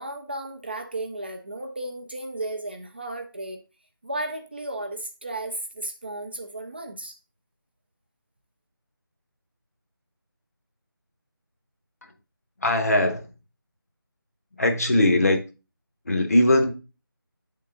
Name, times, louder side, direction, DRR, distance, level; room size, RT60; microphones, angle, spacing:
voice 1, 0.0-3.6 4.0-7.1, right 2 dB, 25° right, 4 dB, 0.5 m, -34 dB
voice 2, 12.6-13.3 14.6-15.4 16.0-16.7, left 1 dB, 40° left, 5 dB, 0.9 m, -20 dB
8.2 x 3.7 x 3.8 m, 0.31 s
figure-of-eight pair, 165°, 12 cm